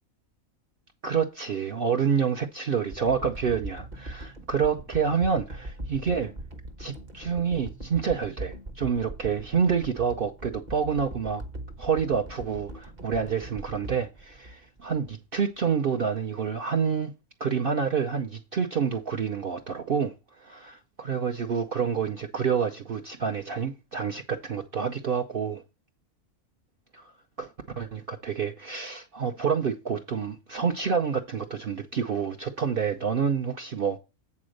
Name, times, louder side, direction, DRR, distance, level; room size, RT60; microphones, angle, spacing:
voice 1, 1.0-6.3 6.8-11.4 11.8-17.1 17.4-25.6 26.9-27.1 27.4-27.5 27.8-34.0, right 6 dB, 50° right, 0.8 m, -28 dB
sound 1, 2.9-15.1 15.7-15.8, right 1 dB, 35° right, 1.1 m, -41 dB
8.6 x 4.1 x 6.4 m
omnidirectional pair, 1.4 m